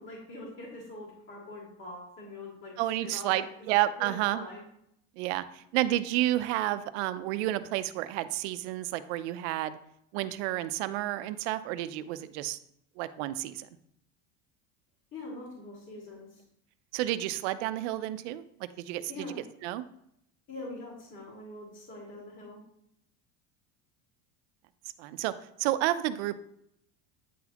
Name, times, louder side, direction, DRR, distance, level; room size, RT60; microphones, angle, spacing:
voice 1, 0.0-2.7 3.0-3.4 4.0-4.6 15.1-16.4 19.1-19.4 20.5-22.6, left 2 dB, 35° left, -3 dB, 2.1 m, -43 dB
voice 2, 2.8-4.4 5.2-9.8 10.1-12.6 13.0-13.7 16.9-19.1 19.6-19.8 25.0-25.3 25.6-26.4, right 14 dB, 85° right, 13 dB, 0.5 m, -30 dB
9.2 x 4.0 x 2.9 m, 0.75 s
cardioid pair, 145°, 34 cm